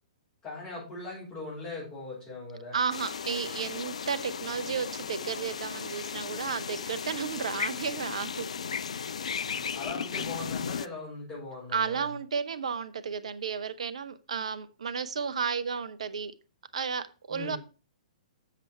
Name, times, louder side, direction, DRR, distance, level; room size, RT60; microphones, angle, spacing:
voice 1, 0.4-2.8 9.5-12.1 17.3-17.6, left 3 dB, 20° left, -8 dB, 5.4 m, -40 dB
voice 2, 2.7-8.5 11.7-16.3 16.7-17.6, right 6 dB, 65° right, 15 dB, 0.7 m, -33 dB
sound 1, 2.9-10.9, left 6 dB, 65° left, 0.4 m, -35 dB
7.4 x 6.8 x 4.4 m, 0.34 s
figure-of-eight pair, 115°, 4 cm